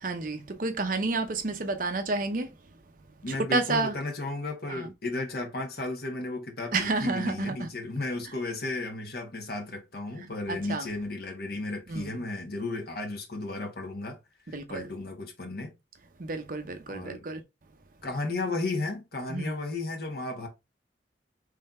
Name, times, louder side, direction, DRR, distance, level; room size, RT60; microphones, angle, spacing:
voice 1, 0.0-2.5 3.3-3.9 4.7-4.9 6.7-7.7 10.5-10.9 11.9-12.1 14.5-14.9 16.2-17.4 19.3-19.5, right 3 dB, 50° right, 0.6 m, -30 dB
voice 2, 3.2-14.2 14.7-15.7 16.9-17.2 18.0-20.5, left 2 dB, 55° left, 1.3 m, -34 dB
3.8 x 3.2 x 4.1 m
head